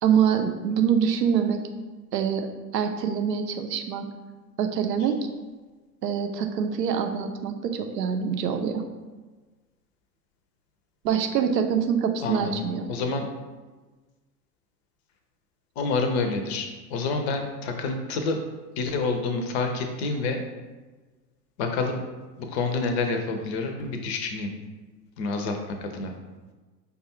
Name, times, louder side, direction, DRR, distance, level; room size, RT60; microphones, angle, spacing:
voice 1, 0.0-1.6 2.1-2.5 2.7-4.1 4.6-5.2 6.0-8.8 11.0-12.9, right 7 dB, 75° right, 6 dB, 0.6 m, -25 dB
voice 2, 12.2-12.6 12.9-13.3 15.8-18.4 18.8-20.4 21.6-22.0 22.4-24.5 25.2-26.1, left 3 dB, 40° left, 5 dB, 0.6 m, -28 dB
5.0 x 2.3 x 2.9 m, 1.3 s
figure-of-eight pair, 90°, 50 cm